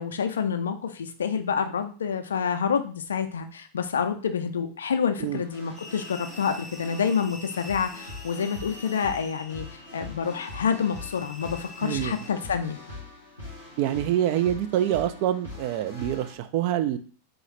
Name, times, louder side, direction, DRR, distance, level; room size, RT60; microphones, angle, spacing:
voice 1, 0.0-12.8, left 6 dB, 65° left, 8 dB, 0.4 m, -28 dB
sound 1, 5.3-16.3, left 2 dB, 90° right, 1.8 m, -43 dB
sound 2, 5.7-12.3, left 2 dB, 10° right, 0.9 m, -45 dB
voice 2, 11.8-12.2 13.8-17.0, right 11 dB, 45° right, 10 dB, 0.3 m, -26 dB
3.7 x 3.1 x 3.2 m, 0.41 s
figure-of-eight pair, 90°, 0 cm